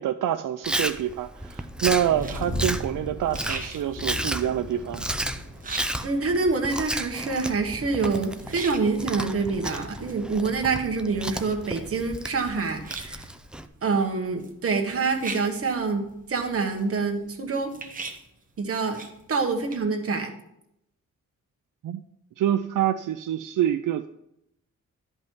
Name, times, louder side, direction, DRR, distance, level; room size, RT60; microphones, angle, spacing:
voice 1, 0.0-5.0 21.8-22.0 22.4-24.1, right 10 dB, 75° right, 8 dB, 0.5 m, -26 dB
Chewing mastication, 0.6-13.7, right 1 dB, 5° right, 0.4 m, -33 dB
Thunder, 1.7-17.8 18.5-18.6 19.2-19.6, left 1 dB, 50° left, 4.2 m, -41 dB
sound 1, 1.8-2.7 3.1-8.9 9.8-10.2 10.5-10.6 10.8-13.4 13.8-13.9 14.4-14.5 14.8-16.3 16.8-19.2 19.5-19.8, right 4 dB, 25° right, 1.1 m, -40 dB
voice 2, 6.0-13.2 13.8-17.7 18.6-19.0 19.3-20.3, right 4 dB, 45° right, 3 dB, 1.3 m, -26 dB
12.0 x 5.4 x 4.5 m, 0.80 s
wide cardioid pair, 170°, 32 cm